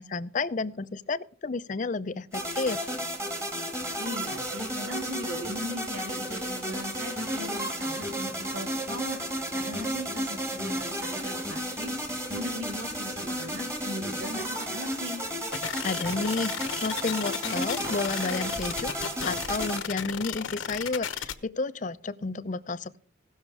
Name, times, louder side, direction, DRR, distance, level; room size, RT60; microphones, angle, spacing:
voice 1, 0.0-2.9 15.8-16.5 16.8-23.0, left 3 dB, 40° left, 15 dB, 0.5 m, -31 dB
sound 1, 2.3-19.8, equal, 15° right, 2.1 m, -33 dB
voice 2, 4.0-12.0 12.3-15.2, equal, 70° right, 1 dB, 2.6 m, -38 dB
sound 2, 15.5-21.3, left 7 dB, 85° left, 1.0 m, -34 dB
17.0 x 6.4 x 4.8 m, 0.43 s
head